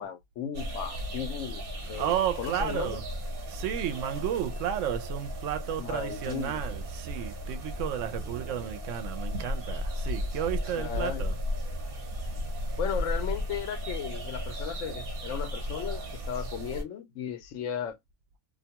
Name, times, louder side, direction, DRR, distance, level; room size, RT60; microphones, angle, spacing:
voice 1, 0.0-3.0 5.8-6.6 10.7-11.2 12.7-18.0, left 8 dB, 85° left, 1.0 m, -36 dB
sound 1, 0.5-16.8, equal, 55° right, 0.9 m, -35 dB
voice 2, 1.9-3.0 3.5-11.3, right 10 dB, 80° right, 0.9 m, -32 dB
2.6 x 2.2 x 2.8 m
omnidirectional pair, 1.3 m